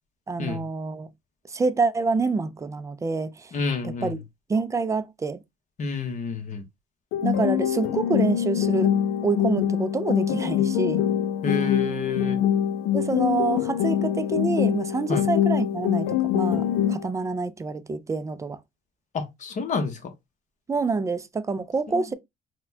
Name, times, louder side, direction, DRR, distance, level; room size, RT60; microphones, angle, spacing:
voice 1, 0.3-1.1 1.5-3.5 3.8-4.2 4.5-5.4 7.2-8.9 9.2-11.0 12.9-18.6 20.7-22.1, right 4 dB, 20° right, 0.4 m, -27 dB
voice 2, 3.5-4.1 5.8-6.6 11.4-12.4 15.1-15.2 19.1-20.0 21.9-22.0, left 4 dB, 45° left, 0.9 m, -29 dB
sound 1, 7.1-17.1, left 10 dB, 90° left, 0.5 m, -24 dB
4.1 x 2.2 x 2.6 m
cardioid pair, 110°, 17 cm